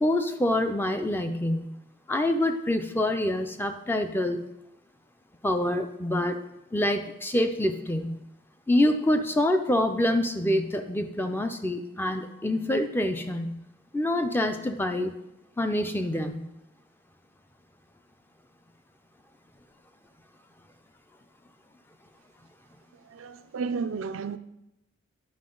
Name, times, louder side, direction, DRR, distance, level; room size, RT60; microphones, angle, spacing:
voice 1, 0.0-1.7 2.1-4.5 5.4-6.4 6.7-8.2 8.7-13.6 13.9-15.1 15.6-16.5, left 1 dB, 10° left, 7 dB, 0.4 m, -26 dB
voice 2, 23.2-24.4, right 5 dB, 80° right, 11 dB, 0.4 m, -32 dB
9.6 x 5.9 x 3.8 m, 0.88 s
head